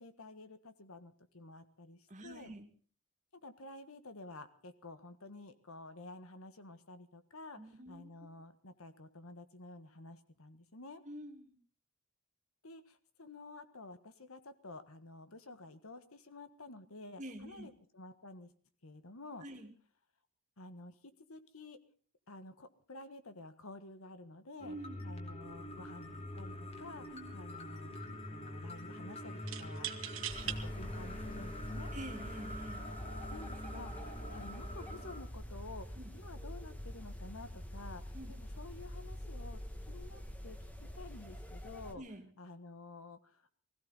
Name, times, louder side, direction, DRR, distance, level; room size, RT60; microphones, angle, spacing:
voice 1, 0.0-2.5 3.4-11.0 12.6-18.5 18.8-19.5 20.6-21.8 22.3-24.8 25.0-27.9 28.3-29.9 30.4-31.9 33.3-39.6 39.9-42.0 42.4-43.5, left 2 dB, 75° left, 10 dB, 1.5 m, -51 dB
voice 2, 2.1-2.7 7.6-8.1 11.1-11.6 17.2-17.7 19.4-19.7 24.6-25.0 27.1-27.5 31.9-32.8 36.0-36.1 38.1-38.3 42.0-42.3, right 1 dB, 35° right, 4 dB, 2.2 m, -47 dB
sound 1, 24.6-35.2, left 1 dB, 30° left, 2.7 m, -45 dB
sound 2, 26.3-26.6 26.9-27.5 29.5-30.6 31.3-31.4 32.3-32.6, right 12 dB, 65° right, 1.5 m, -42 dB
sound 3, 30.3-41.9, equal, 5° left, 1.4 m, -45 dB
20.5 x 15.5 x 4.1 m, 0.44 s
head